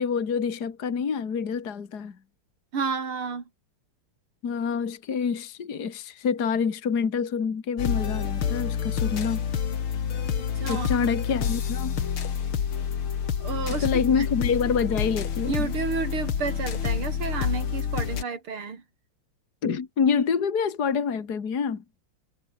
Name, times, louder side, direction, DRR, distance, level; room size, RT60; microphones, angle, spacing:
voice 1, 0.0-2.2 4.4-9.4 10.7-11.9 13.8-15.7 19.6-21.8, left 6 dB, 50° left, 2.4 m, -27 dB
voice 2, 2.7-3.4 10.6-11.1 13.4-13.9 15.5-18.8, right 5 dB, 85° right, 4.1 m, -31 dB
sound 1, 7.8-18.2, left 7 dB, 75° left, 2.8 m, -28 dB
omnidirectional pair, 2.3 m